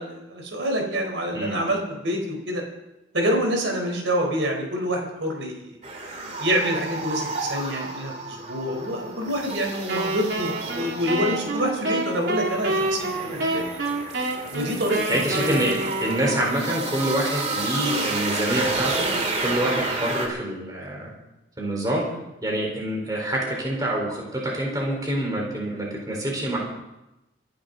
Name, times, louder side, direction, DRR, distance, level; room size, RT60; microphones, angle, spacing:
voice 1, 0.0-2.6 3.1-5.8 6.4-13.6 14.5-15.6, equal, 90° right, 2 dB, 4.3 m, -27 dB
sound 1, 5.8-20.3, right 3 dB, 35° right, 2.4 m, -31 dB
Wind instrument woodwind instrument, 9.9-16.7, right 2 dB, 75° right, 2.9 m, -28 dB
voice 2, 15.1-19.1 19.4-21.1 21.6-22.0 22.4-26.6, right 1 dB, 20° right, -2 dB, 4.4 m, -26 dB
25.5 x 11.5 x 4.0 m, 0.95 s
head